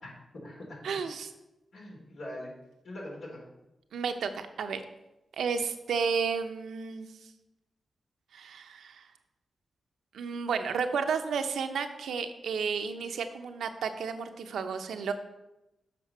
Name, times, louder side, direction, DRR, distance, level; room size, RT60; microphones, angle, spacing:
voice 1, 0.0-0.9 1.7-2.5 2.8-3.5, left 1 dB, 75° left, -2 dB, 3.3 m, -42 dB
voice 2, 0.8-1.3 3.9-4.8 5.3-7.2 8.3-9.1 10.1-15.1, right 6 dB, 85° right, 8 dB, 0.7 m, -32 dB
7.5 x 5.0 x 5.6 m, 0.95 s
cardioid pair, 50°, 0 cm